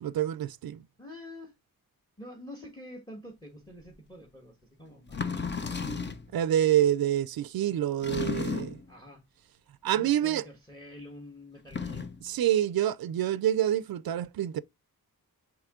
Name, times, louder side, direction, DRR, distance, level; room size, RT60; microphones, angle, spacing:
voice 1, 0.0-0.8 6.3-8.8 9.8-10.4 12.2-14.6, right 11 dB, 75° right, 0.5 m, -27 dB
voice 2, 1.0-1.5 2.2-5.7 8.9-9.2 9.9-12.1, left 1 dB, 10° left, 1.4 m, -47 dB
sound 1, 3.9-4.0 5.1-6.3 8.0-8.9 11.6-12.2, left 5 dB, 30° left, 0.7 m, -33 dB
8.2 x 3.1 x 3.7 m
wide cardioid pair, 140°, 37 cm